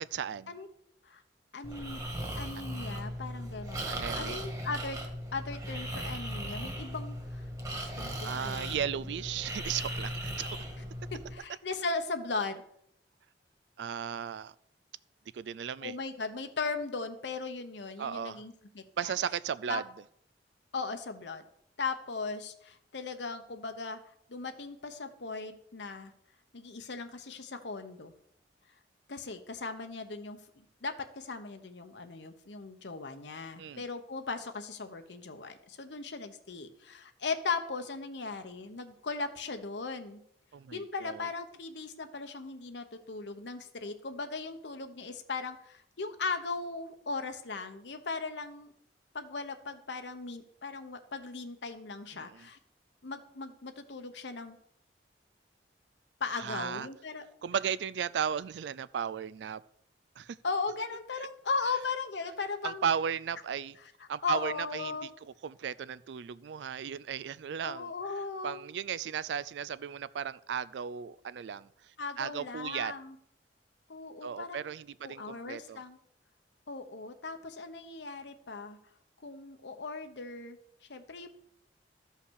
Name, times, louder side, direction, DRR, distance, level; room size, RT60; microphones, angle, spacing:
voice 1, 0.1-0.5 3.9-4.4 7.9-10.6 13.8-14.5 15.3-15.9 18.0-18.4 19.0-19.8 33.6-33.8 40.5-41.3 52.1-52.5 56.4-56.9 57.4-59.6 60.2-60.4 62.6-63.8 64.1-65.1 65.4-67.9 68.4-71.7 72.2-72.9 74.2-75.8, right 8 dB, 75° right, 18 dB, 0.4 m, -35 dB
voice 2, 1.5-2.0 2.4-5.0 5.3-7.4 7.7-8.9 11.1-12.6 15.8-19.1 19.7-19.8 20.7-21.4 21.8-24.0 24.3-26.1 26.5-28.1 29.1-30.4 30.8-40.2 40.7-48.7 49.1-52.6 53.0-54.6 56.2-57.2 60.4-62.9 63.8-65.1 67.6-68.6 72.0-73.2 73.9-74.6 75.0-76.0 76.7-78.8 79.2-80.6 80.9-81.3, left 4 dB, 75° left, 7 dB, 1.0 m, -38 dB
Breathing, 1.6-11.3, equal, 20° right, 1.8 m, -38 dB
13.0 x 5.8 x 6.4 m, 0.70 s
head